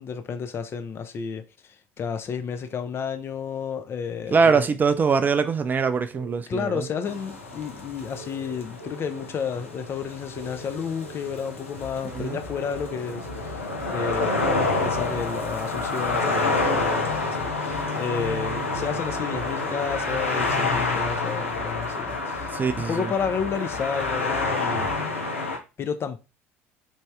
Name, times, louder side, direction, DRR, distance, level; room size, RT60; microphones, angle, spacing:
voice 1, 0.0-4.6 6.5-14.5 14.8-25.0 25.8-26.2, left 6 dB, 35° left, 0.6 m, -31 dB
voice 2, 4.3-6.9 12.1-12.4 22.5-23.1, right 5 dB, 25° right, 0.3 m, -22 dB
sound 1, 6.1-7.0 8.1-9.3 10.4-11.5 12.6-13.5, right 2 dB, 90° right, 0.5 m, -43 dB
sound 2, 7.0-25.6, left 3 dB, 85° left, 0.7 m, -28 dB
sound 3, 11.7-25.0, left 4 dB, 15° left, 1.0 m, -44 dB
3.3 x 2.7 x 3.3 m
figure-of-eight pair, 60°, 7 cm